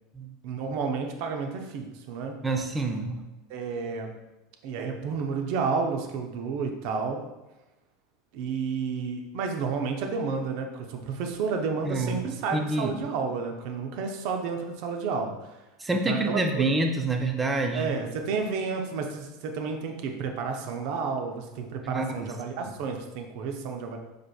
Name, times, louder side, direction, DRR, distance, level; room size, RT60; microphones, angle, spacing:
voice 1, 0.4-2.4 3.5-4.1 4.6-7.2 8.3-15.5 15.9-16.7 17.7-24.0, right 5 dB, 60° right, 4 dB, 0.7 m, -31 dB
voice 2, 2.4-3.2 11.9-12.2 12.5-12.9 15.8-17.9 21.9-22.3, right 2 dB, 15° right, 4 dB, 0.6 m, -27 dB
4.9 x 4.5 x 2.4 m, 1.0 s
hypercardioid pair, 85°, 0 cm